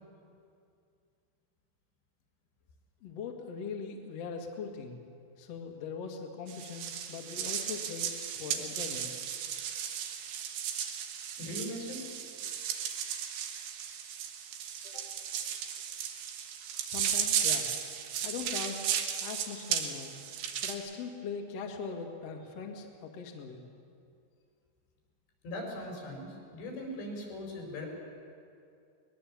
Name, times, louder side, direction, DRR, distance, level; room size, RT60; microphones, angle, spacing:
voice 1, 3.0-5.0 5.4-9.1 16.8-17.7 18.2-18.8 19.2-20.1 20.6-23.6, left 5 dB, 50° left, 1 dB, 2.2 m, -41 dB
sound 1, 6.5-20.8, right 8 dB, 75° right, 3.4 m, -35 dB
voice 2, 11.4-12.0 14.8-15.1 25.4-27.9, left 1 dB, 90° left, 0 dB, 6.9 m, -40 dB
21.0 x 21.0 x 7.4 m, 2.4 s
omnidirectional pair, 4.9 m